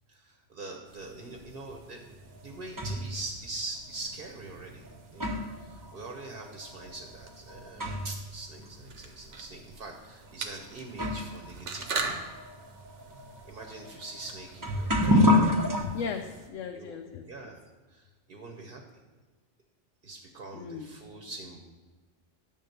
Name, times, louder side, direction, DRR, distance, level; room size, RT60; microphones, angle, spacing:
voice 1, 0.1-2.0 2.4-4.8 5.1-12.1 13.4-15.4 16.7-16.9 17.3-17.6 17.9-19.0 20.0-21.6, right 2 dB, 50° right, 2 dB, 1.0 m, -43 dB
sound 1, 0.8-16.5, right 4 dB, 75° right, 1.2 m, -44 dB
sound 2, 2.1-3.2 4.1-4.2 4.8-8.3 8.6-8.7 9.5-9.6 10.5-10.6 10.9-15.8, left 1 dB, 20° right, 0.7 m, -29 dB
voice 2, 15.8-17.3 20.5-21.0, left 6 dB, 85° left, 4 dB, 1.0 m, -37 dB
10.5 x 3.7 x 6.6 m, 1.3 s
omnidirectional pair, 1.3 m